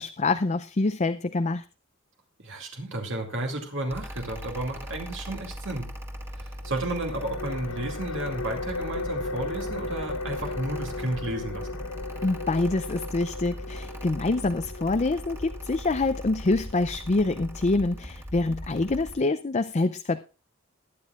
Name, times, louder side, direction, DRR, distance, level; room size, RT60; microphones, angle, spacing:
voice 1, 0.0-1.6 12.2-20.2, left 2 dB, 35° left, 9 dB, 0.5 m, -26 dB
voice 2, 2.4-5.9 6.3-11.8, right 1 dB, 60° right, 1 dB, 2.4 m, -32 dB
Mechanical fan, 3.9-19.2, equal, 10° right, 2.0 m, -39 dB
sound 1, 6.6-18.0, left 3 dB, 80° left, 0.9 m, -37 dB
21.5 x 9.4 x 2.5 m, 0.33 s
head